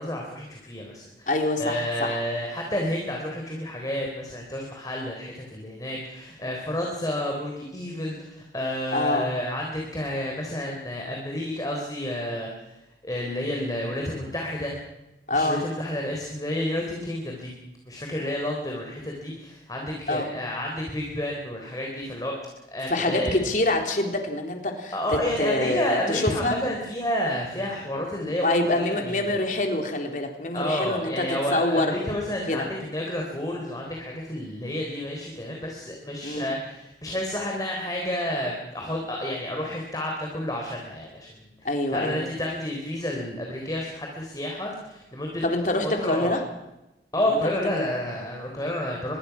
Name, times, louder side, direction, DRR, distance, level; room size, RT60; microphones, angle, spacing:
voice 1, 0.0-1.3 1.6-14.8 15.3-17.5 17.8-22.3 22.7-23.4 24.9-29.4 30.5-45.4 45.8-46.4 47.1-49.2, left 1 dB, 20° left, 0 dB, 3.8 m, -30 dB
voice 2, 1.3-2.2 8.9-9.3 15.3-15.6 20.1-20.3 22.9-26.5 28.4-31.3 31.5-32.0 32.5-32.7 36.2-36.5 41.6-42.2 45.4-46.4 47.4-47.5 47.8-47.9, left 2 dB, 45° left, 3 dB, 3.8 m, -26 dB
25.5 x 22.0 x 6.0 m, 0.97 s
head